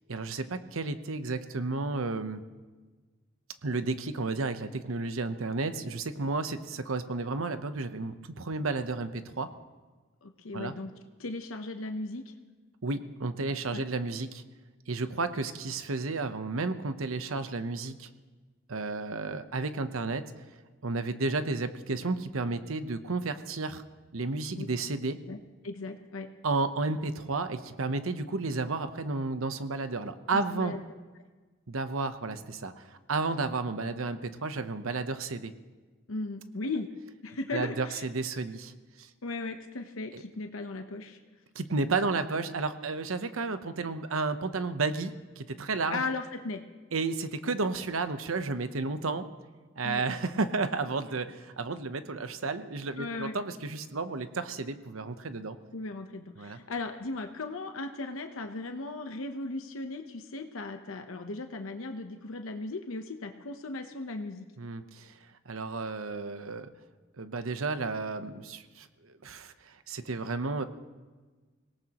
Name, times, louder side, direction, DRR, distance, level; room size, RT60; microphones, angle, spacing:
voice 1, 0.1-2.4 3.6-9.5 10.5-10.7 12.8-14.4 14.9-18.1 18.7-20.2 20.8-23.8 24.1-25.2 26.4-30.7 31.7-35.5 37.5-38.7 39.0-39.1 40.1-40.2 41.5-46.0 46.9-49.2 49.8-55.6 56.4-56.6 64.6-65.2 65.5-66.7 67.2-70.6, right 3 dB, 90° right, 10 dB, 0.9 m, -32 dB
voice 2, 10.2-10.9 11.2-12.2 13.7-13.8 24.6-24.7 25.3-25.4 25.6-26.3 30.3-30.8 36.1-36.9 37.2-38.0 39.2-41.2 45.9-46.6 49.8-50.0 53.0-53.4 55.7-64.5, left 3 dB, 90° left, 5 dB, 0.9 m, -37 dB
25.0 x 18.0 x 3.0 m, 1.3 s
head